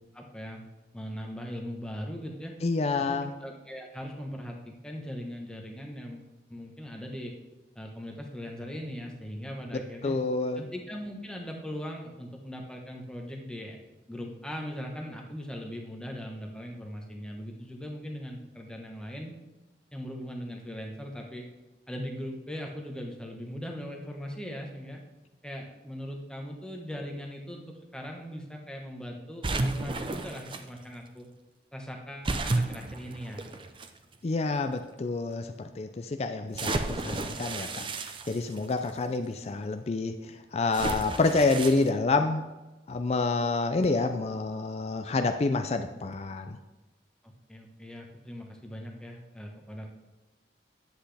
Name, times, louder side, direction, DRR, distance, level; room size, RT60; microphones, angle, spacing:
voice 1, 0.1-0.6 0.9-2.5 3.1-7.3 7.7-10.1 10.6-13.8 14.1-19.3 19.9-21.4 21.9-25.0 25.4-31.3 31.7-33.5 37.7-37.8 47.2-49.9, equal, 5° left, 1 dB, 1.1 m, -40 dB
voice 2, 2.6-3.3 9.7-10.6 34.2-42.4 42.9-46.6, left 3 dB, 35° left, 7 dB, 0.4 m, -28 dB
sound 1, 29.4-30.6 32.2-33.9 34.6-34.7 36.5-38.9 40.7-41.9, right 2 dB, 30° right, 0.5 m, -32 dB
9.9 x 8.1 x 3.4 m, 1.1 s
head